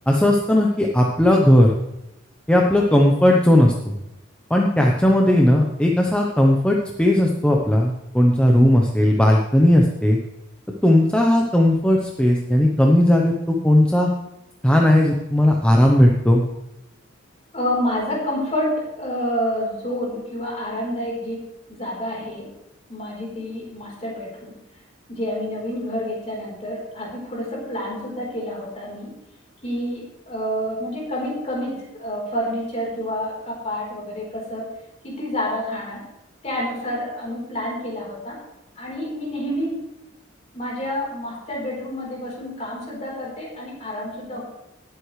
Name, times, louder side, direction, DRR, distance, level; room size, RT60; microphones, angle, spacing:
voice 1, 0.1-1.7 2.5-3.9 4.5-10.2 10.8-14.1 14.6-16.4, left 1 dB, 5° left, -1 dB, 0.8 m, -17 dB
voice 2, 17.5-22.5 22.9-24.6 25.1-29.1 29.6-34.7 35.0-36.0 36.4-38.4 38.8-39.8 40.5-44.4, equal, 35° left, -3 dB, 3.9 m, -28 dB
18.5 x 8.1 x 3.2 m, 0.91 s
head